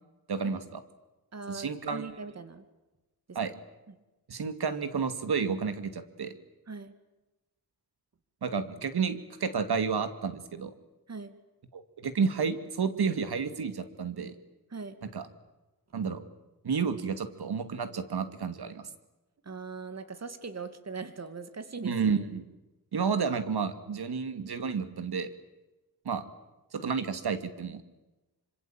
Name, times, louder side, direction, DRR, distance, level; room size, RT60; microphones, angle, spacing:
voice 1, 0.3-0.8 1.5-2.1 3.3-3.5 4.3-6.3 8.4-10.7 11.7-14.3 15.0-15.3 15.9-16.2 16.6-18.9 21.8-22.5 22.9-25.3 26.0-26.2 26.7-27.8, right 5 dB, 85° right, 10 dB, 2.4 m, -31 dB
voice 2, 1.3-2.6 3.3-3.4 3.9-4.0 6.7-6.9 11.1-11.3 14.7-15.0 19.4-21.9, right 4 dB, 40° right, 10 dB, 2.5 m, -40 dB
26.0 x 25.5 x 8.9 m, 1.1 s
wide cardioid pair, 140°, 38 cm